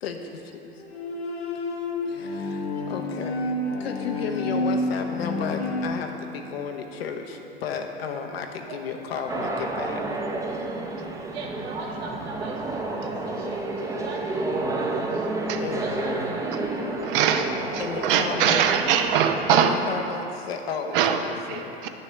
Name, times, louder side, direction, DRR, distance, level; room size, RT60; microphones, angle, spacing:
voice 1, 0.0-0.8 2.1-3.5 3.8-10.0 15.6-16.3 17.8-18.7 19.5-21.8, left 6 dB, 70° left, 4 dB, 0.9 m, -33 dB
Bowed string instrument, 0.8-5.9, left 2 dB, 90° left, 1.3 m, -29 dB
sound 1, 9.3-19.7, right 2 dB, 10° right, 0.7 m, -30 dB
voice 2, 11.3-15.4 15.8-16.4 16.9-17.4 18.3-18.6, right 3 dB, 75° right, -2 dB, 1.5 m, -39 dB
voice 3, 17.0-17.5 17.7-19.8 20.9-21.9, right 8 dB, 55° right, 7 dB, 0.7 m, -23 dB
10.0 x 6.5 x 3.3 m, 2.9 s
hypercardioid pair, 95°, 32 cm